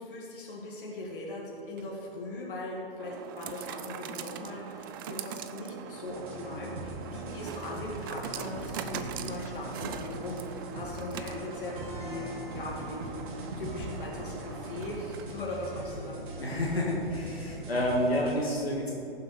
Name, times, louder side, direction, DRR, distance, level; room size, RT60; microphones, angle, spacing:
voice 1, 0.0-16.3, left 2 dB, 60° left, -3 dB, 2.2 m, -39 dB
sound 1, 1.6-15.6, right 8 dB, 25° right, 0.4 m, -42 dB
sound 2, 6.0-18.4, right 1 dB, 55° right, 2.7 m, -41 dB
voice 2, 16.4-18.9, left 1 dB, 85° left, -3 dB, 2.0 m, -29 dB
15.5 x 7.3 x 5.1 m, 2.8 s
figure-of-eight pair, 120°, 30 cm